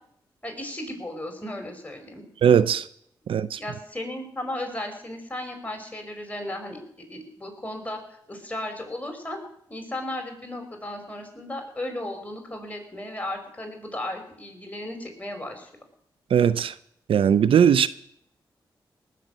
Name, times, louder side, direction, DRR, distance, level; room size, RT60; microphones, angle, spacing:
voice 1, 0.4-2.2 3.5-9.4 9.7-15.7, left 1 dB, 15° left, 5.5 m, -35 dB
voice 2, 2.4-2.9 3.3-3.6 16.3-16.7 17.1-17.9, right 8 dB, 75° right, 0.5 m, -19 dB
19.0 x 7.3 x 8.3 m
supercardioid pair, 45°, 9 cm